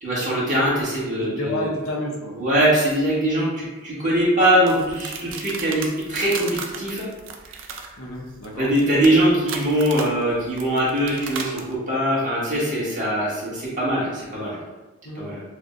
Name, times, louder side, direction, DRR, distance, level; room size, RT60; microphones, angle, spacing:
voice 1, 0.0-1.7 2.3-7.1 7.7-7.8 8.6-14.6 15.1-15.4, right 1 dB, 35° right, -7 dB, 1.4 m, -22 dB
voice 2, 1.2-2.4 8.0-8.7 15.0-15.3, left 1 dB, 70° left, -1 dB, 0.7 m, -30 dB
sound 1, 4.7-11.8, right 5 dB, 60° right, 0.4 m, -35 dB
6.1 x 2.1 x 2.5 m, 1.2 s
head